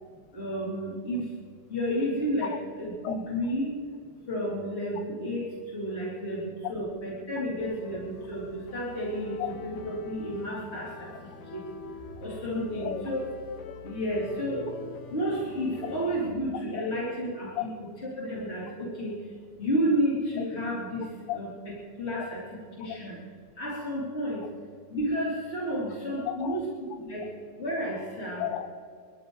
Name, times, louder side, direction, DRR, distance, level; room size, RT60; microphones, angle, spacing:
voice 1, 0.3-1.2 1.7-2.5 2.8-3.7 4.3-5.4 5.7-9.4 9.6-11.1 11.5-11.6 12.2-13.2 13.8-14.7 15.1-17.6 18.2-19.2 19.6-21.0 21.4-21.5 22.0-22.4 22.8-23.2 23.6-24.5 24.9-26.6 27.0-27.3 27.6-28.4, equal, 20° left, -6 dB, 2.1 m, -31 dB
sound 1, 7.6-16.4, left 5 dB, 65° left, 3.1 m, -44 dB
voice 2, 12.6-13.0 15.8-15.9 16.5-16.9 17.5-17.7 20.4-20.5 21.0-21.4 22.9-23.0 26.2-26.6 27.2-27.3 28.4-28.7, left 11 dB, 80° left, 9 dB, 2.6 m, -35 dB
23.5 x 14.0 x 3.9 m, 2.1 s
omnidirectional pair, 5.9 m